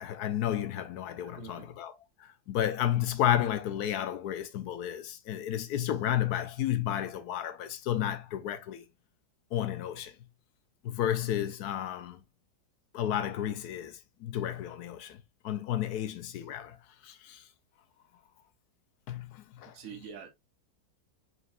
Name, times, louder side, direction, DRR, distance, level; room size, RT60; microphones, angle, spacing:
voice 1, 0.0-8.8 9.5-10.1 10.8-12.2 12.9-15.2 15.4-16.8 17.0-17.4 19.1-19.7, left 11 dB, 70° left, 1.0 m, -32 dB
voice 2, 1.2-1.7 19.7-20.3, right 7 dB, 50° right, 1.4 m, -45 dB
4.9 x 4.6 x 2.4 m
omnidirectional pair, 2.0 m